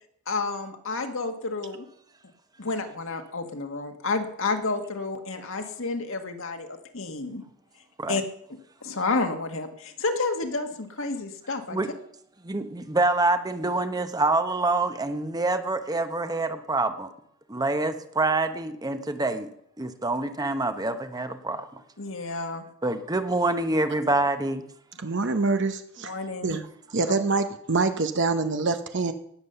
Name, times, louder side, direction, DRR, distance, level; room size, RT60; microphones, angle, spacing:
voice 1, 0.3-1.9 2.6-7.4 8.1-8.2 8.5-11.8 22.0-22.6 26.0-26.5 27.1-27.2, left 3 dB, 65° left, 5 dB, 1.8 m, -30 dB
voice 2, 12.4-17.1 17.5-19.5 19.8-21.6 22.8-24.6, right 2 dB, 15° right, 9 dB, 0.9 m, -26 dB
voice 3, 25.0-26.1 26.4-26.6 26.9-29.1, right 3 dB, 55° right, 8 dB, 0.9 m, -25 dB
18.0 x 7.6 x 6.8 m, 0.70 s
head